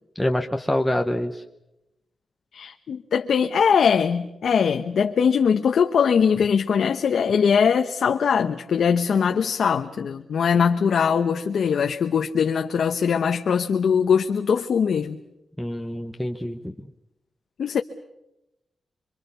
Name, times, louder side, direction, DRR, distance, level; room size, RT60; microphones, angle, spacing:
voice 1, 0.1-1.4 15.6-16.9, left 1 dB, 5° left, 3 dB, 1.0 m, -26 dB
voice 2, 2.5-15.2 17.6-17.8, left 7 dB, 70° left, 5 dB, 1.0 m, -21 dB
27.0 x 24.5 x 7.0 m, 0.90 s
wide cardioid pair, 175°, 0 cm